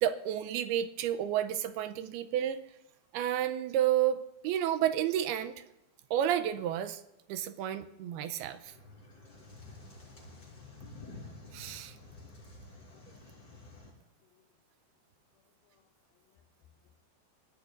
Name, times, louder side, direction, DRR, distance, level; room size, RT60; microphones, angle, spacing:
voice 1, 0.0-2.6 3.1-5.6 6.1-7.0 7.3-8.7 11.5-12.0, right 11 dB, 80° right, 2.3 m, -31 dB
sound 1, 8.6-13.9, left 2 dB, 25° left, 5.2 m, -50 dB
voice 2, 12.7-13.9 14.2-14.4 15.6-15.9 16.2-16.4, left 10 dB, 80° left, 2.1 m, -72 dB
23.5 x 18.0 x 2.6 m
omnidirectional pair, 5.1 m